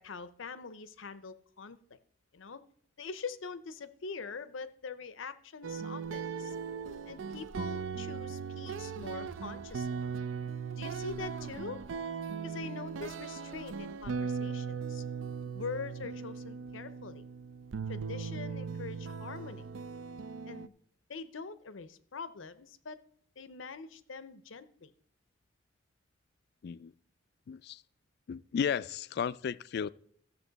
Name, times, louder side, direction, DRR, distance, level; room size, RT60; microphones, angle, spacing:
voice 1, 0.0-2.0 2.3-2.6 3.0-6.6 7.1-10.0 10.7-11.8 12.4-15.0 15.5-17.2 17.9-19.7 20.5-20.7 21.1-23.0 23.4-24.9, left 5 dB, 85° left, 0.7 m, -43 dB
sound 1, 5.6-20.7, right 5 dB, 80° right, 0.4 m, -38 dB
voice 2, 27.5-27.8 28.3-29.9, left 7 dB, 55° left, 0.3 m, -34 dB
14.0 x 7.0 x 4.0 m
head